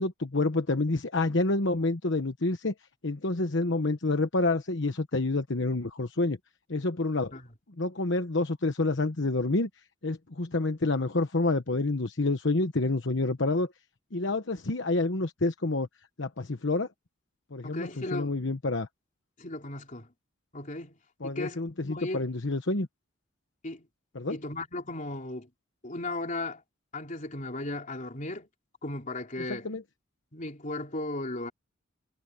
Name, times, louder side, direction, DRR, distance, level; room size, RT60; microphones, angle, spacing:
voice 1, 0.0-2.7 3.0-6.4 6.7-7.3 7.8-9.7 10.0-13.7 14.1-15.9 16.2-16.9 17.5-18.9 21.2-22.9 24.1-24.4 29.5-29.8, left 2 dB, 65° left, 1.1 m, -28 dB
voice 2, 17.6-18.4 19.4-20.1 20.5-22.3 23.6-23.9 24.3-25.5 25.8-26.6 26.9-28.5 28.8-29.7 30.3-31.5, left 2 dB, 40° left, 3.6 m, -36 dB
head